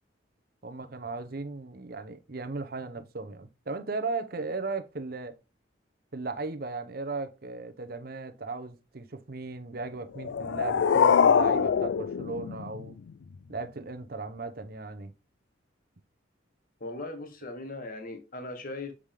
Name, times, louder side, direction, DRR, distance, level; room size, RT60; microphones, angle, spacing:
voice 1, 0.6-5.4 6.1-13.0 13.5-15.1, right 3 dB, 55° right, 0.8 m, -36 dB
sound 1, 10.1-13.1, left 6 dB, 75° left, 0.4 m, -24 dB
voice 2, 16.8-18.9, left 2 dB, 50° left, 1.4 m, -38 dB
7.2 x 4.9 x 3.5 m
head